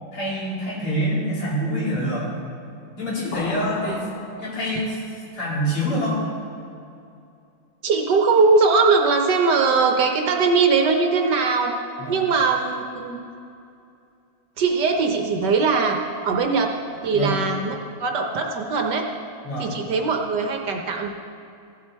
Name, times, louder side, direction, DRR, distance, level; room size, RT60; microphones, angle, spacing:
voice 1, 0.1-2.3 3.0-4.1 4.4-5.0 5.3-6.2 12.0-12.2 17.1-17.4 19.4-19.7, equal, 80° left, -8 dB, 4.1 m, -25 dB
sound 1, 3.3-5.0, left 4 dB, 60° left, 1.2 m, -35 dB
voice 2, 7.8-11.7 12.1-13.2 14.6-16.0 16.2-16.7 17.0-19.1 19.6-21.1, right 4 dB, 65° right, 3 dB, 1.3 m, -20 dB
15.0 x 7.4 x 4.5 m, 2.6 s
omnidirectional pair, 2.3 m